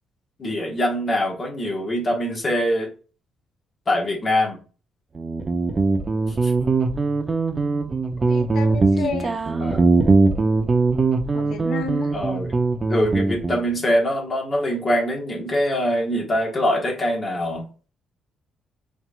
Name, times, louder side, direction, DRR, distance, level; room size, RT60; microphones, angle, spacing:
voice 1, 0.4-2.9 3.9-4.6 6.4-6.5 9.6-10.0 12.1-12.5 12.9-17.6, equal, 35° left, 0 dB, 1.5 m, -23 dB
Guitar, 5.2-13.6, right 3 dB, 35° right, 0.7 m, -21 dB
voice 2, 8.3-9.4 11.3-12.1, left 4 dB, 75° left, 5 dB, 1.2 m, -31 dB
5.9 x 3.5 x 2.5 m, 0.34 s
cardioid pair, 90°, 0 cm